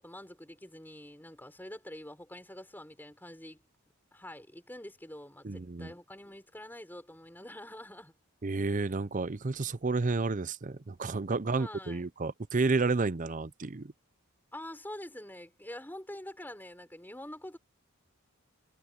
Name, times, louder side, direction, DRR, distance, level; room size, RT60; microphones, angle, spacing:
voice 1, 0.0-3.6 4.1-8.1 8.8-8.9 11.4-12.0 14.5-17.6, left 1 dB, 10° left, 5.5 m, -46 dB
voice 2, 5.4-5.9 8.4-13.9, right 3 dB, 35° right, 0.6 m, -31 dB
head